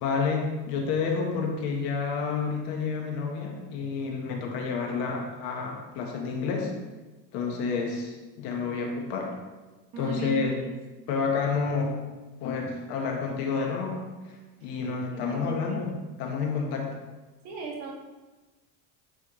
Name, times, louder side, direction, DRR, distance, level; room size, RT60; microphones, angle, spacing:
voice 1, 0.0-6.7 7.3-9.4 10.0-10.5 11.1-12.0 12.4-14.1 14.6-17.0, left 5 dB, 65° left, 1 dB, 1.4 m, -29 dB
voice 2, 9.9-10.7 15.1-15.8 17.4-17.9, right 4 dB, 45° right, 0 dB, 1.4 m, -37 dB
9.3 x 4.3 x 3.1 m, 1.2 s
cardioid pair, 165°, 39 cm